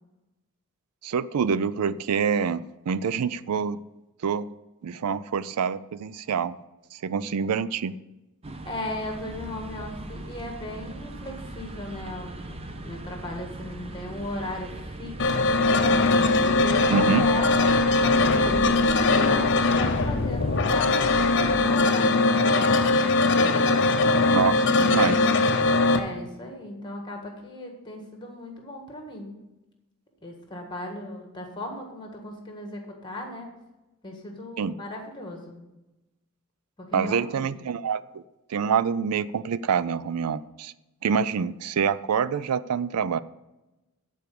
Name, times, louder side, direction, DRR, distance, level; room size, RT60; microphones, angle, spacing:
voice 1, 1.0-3.8 4.2-4.5 4.8-6.5 6.9-7.9 16.9-17.2 24.3-25.4 34.6-34.7 36.9-38.2 38.5-40.7 41.0-43.2, right 6 dB, 85° right, 16 dB, 0.4 m, -26 dB
sound 1, 8.4-21.8, right 1 dB, 25° right, 0.7 m, -38 dB
voice 2, 8.6-15.5 16.4-23.4 25.9-29.3 30.2-33.5 34.0-35.6 36.8-37.5, left 1 dB, 20° left, 2 dB, 1.7 m, -37 dB
sound 2, 15.2-26.0, left 3 dB, 50° left, 0.7 m, -21 dB
12.0 x 4.6 x 6.8 m, 1.0 s
head